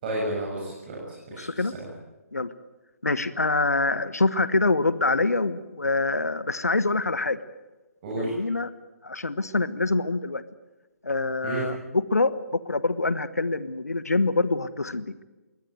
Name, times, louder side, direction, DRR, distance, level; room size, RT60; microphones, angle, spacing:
voice 1, 0.0-1.9 8.0-8.4 11.4-11.6, right 1 dB, 35° right, -4 dB, 7.4 m, -32 dB
voice 2, 1.3-1.7 2.3-2.5 3.0-7.4 8.2-8.7 9.0-10.4 11.0-12.4 12.6-15.2, left 3 dB, 75° left, 15 dB, 1.2 m, -25 dB
22.5 x 18.0 x 9.2 m, 1.1 s
figure-of-eight pair, 135°, 9 cm